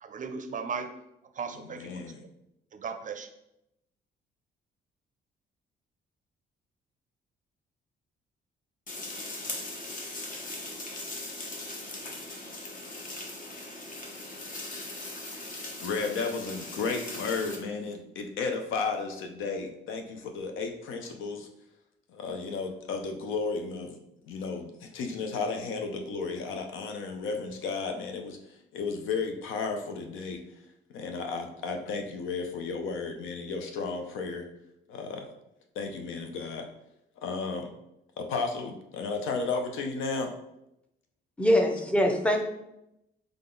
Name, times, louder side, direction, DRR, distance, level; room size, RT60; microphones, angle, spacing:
voice 1, 0.0-0.9 1.4-1.9 2.7-3.3, right 5 dB, 40° right, 8 dB, 0.5 m, -36 dB
voice 2, 1.5-2.2 15.8-21.5 22.1-24.0 24.2-28.4 28.7-30.4 30.9-34.5 34.9-35.3 35.8-36.7 37.2-37.7 38.2-40.3, left 4 dB, 85° left, 4 dB, 0.7 m, -33 dB
sound 1, 8.9-17.6, left 2 dB, 45° left, 1.1 m, -39 dB
voice 3, 41.4-42.4, equal, 5° left, 3 dB, 0.7 m, -23 dB
3.8 x 3.4 x 3.8 m, 0.85 s
cardioid pair, 90°, 20 cm